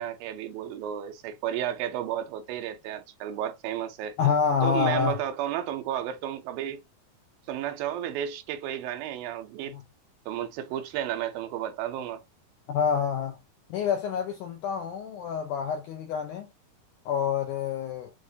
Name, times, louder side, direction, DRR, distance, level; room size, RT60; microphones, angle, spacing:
voice 1, 0.0-4.2 4.6-6.8 7.5-9.8 10.3-12.2, right 11 dB, 80° right, 2.3 m, -32 dB
voice 2, 4.2-5.2 9.7-9.8 12.7-13.4 13.7-16.5 17.1-18.1, left 7 dB, 80° left, 1.8 m, -27 dB
6.2 x 2.4 x 2.6 m
omnidirectional pair, 4.2 m